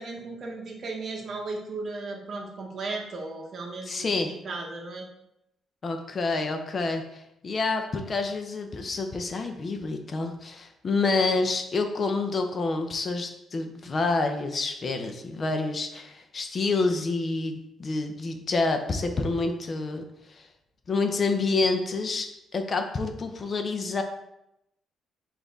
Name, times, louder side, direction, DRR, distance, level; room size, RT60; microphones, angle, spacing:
voice 1, 0.0-5.1, right 3 dB, 50° right, 0 dB, 0.8 m, -36 dB
voice 2, 3.9-4.3 5.8-20.5 20.9-22.3 22.5-24.0, left 3 dB, 40° left, 6 dB, 0.6 m, -28 dB
4.9 x 2.6 x 3.9 m, 0.83 s
cardioid pair, 90°, 0 cm